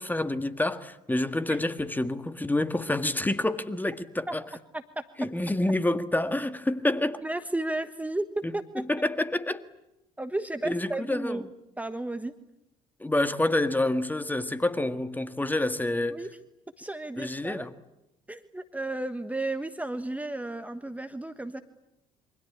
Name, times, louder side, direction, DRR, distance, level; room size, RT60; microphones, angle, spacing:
voice 1, 0.0-4.4 5.2-7.2 8.4-9.6 10.6-11.4 13.0-16.2 17.2-17.7, left 1 dB, 10° left, 1.7 m, -28 dB
voice 2, 7.2-8.8 10.2-11.5 11.8-12.3 16.1-16.3 16.8-17.7 18.3-21.6, right 2 dB, 10° right, 1.4 m, -33 dB
28.0 x 24.5 x 8.7 m
figure-of-eight pair, 55°, 18 cm